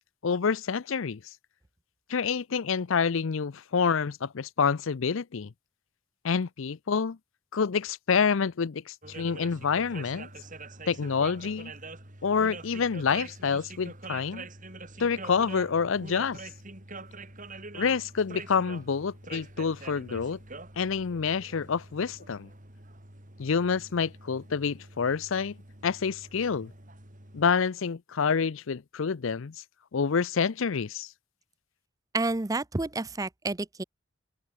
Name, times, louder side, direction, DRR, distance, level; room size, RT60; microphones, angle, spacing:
voice 1, 0.2-1.2 2.1-5.5 6.2-7.2 7.5-10.3 10.9-11.7 12.2-14.5 15.0-16.4 17.7-20.4 20.8-22.5 23.4-25.6 25.8-26.7 27.3-29.6 29.9-31.1, left 6 dB, 65° left, 0.5 m, -27 dB
sound 1, 9.0-27.5, right 3 dB, 35° right, 4.4 m, -45 dB
voice 2, 32.1-33.8, right 2 dB, 15° right, 0.6 m, -30 dB
open air
head